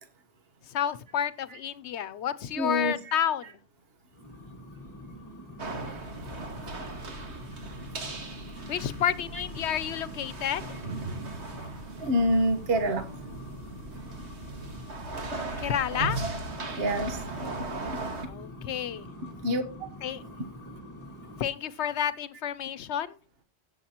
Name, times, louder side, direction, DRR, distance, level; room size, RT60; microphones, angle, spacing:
voice 1, 0.7-3.5 8.7-10.6 15.6-16.2 18.3-19.1 20.0-20.2 21.4-23.1, left 9 dB, 85° left, 1.0 m, -30 dB
voice 2, 2.6-3.1 3.4-3.5 6.7-6.8 8.0-8.1 12.0-13.1 16.7-17.2 19.4-19.6, equal, 60° right, 1.4 m, -26 dB
sound 1, 4.1-15.2 16.3-21.5, equal, 15° left, 1.9 m, -46 dB
sound 2, 5.6-18.3, right 2 dB, 80° right, 2.1 m, -38 dB
16.5 x 7.3 x 2.9 m
omnidirectional pair, 1.1 m